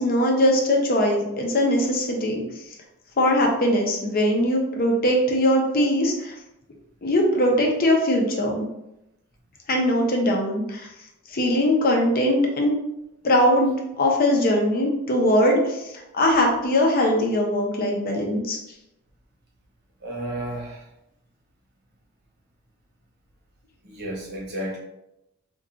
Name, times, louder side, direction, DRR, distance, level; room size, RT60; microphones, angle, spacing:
voice 1, 0.0-2.4 3.2-6.3 7.0-8.7 9.7-10.9 11.3-12.7 13.2-18.6, left 1 dB, 40° left, 1 dB, 0.6 m, -21 dB
voice 2, 20.0-20.8 23.8-24.8, right 1 dB, 50° right, -2 dB, 0.8 m, -32 dB
2.4 x 2.3 x 3.8 m, 0.87 s
head